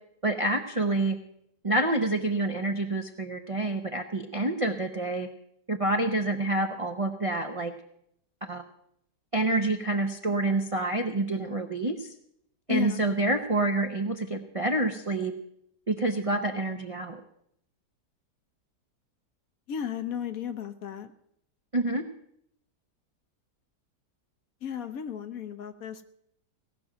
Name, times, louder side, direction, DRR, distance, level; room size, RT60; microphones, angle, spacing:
voice 1, 0.2-1.2 1.6-5.3 5.7-7.7 8.4-8.6 9.3-12.1 12.7-15.3 15.9-17.2 21.7-22.0, right 2 dB, 40° right, 5 dB, 0.5 m, -27 dB
voice 2, 12.7-13.0 19.7-21.1 24.6-26.0, left 9 dB, 60° left, 10 dB, 1.1 m, -34 dB
17.5 x 6.1 x 8.9 m, 0.73 s
omnidirectional pair, 1.8 m